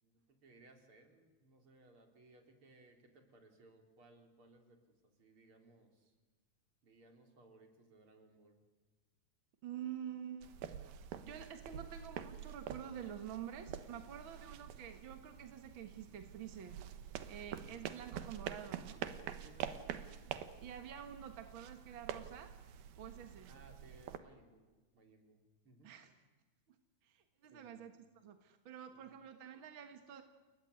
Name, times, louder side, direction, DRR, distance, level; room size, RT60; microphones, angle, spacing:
voice 1, 0.0-6.1 6.8-8.6 19.4-19.9 23.5-24.6 24.9-25.9 27.5-27.9 28.9-29.2, right 2 dB, 35° right, 4 dB, 4.2 m, -63 dB
voice 2, 9.6-10.5 11.2-16.8 17.3-19.0 20.6-22.5 23.0-23.5 25.8-26.1 26.7-26.8 27.0-27.9 28.2-30.2, right 9 dB, 55° right, 7 dB, 1.4 m, -48 dB
sound 1, 10.4-24.2, right 9 dB, 85° right, 3.2 m, -47 dB
29.0 x 20.0 x 9.6 m, 1.3 s
omnidirectional pair, 4.2 m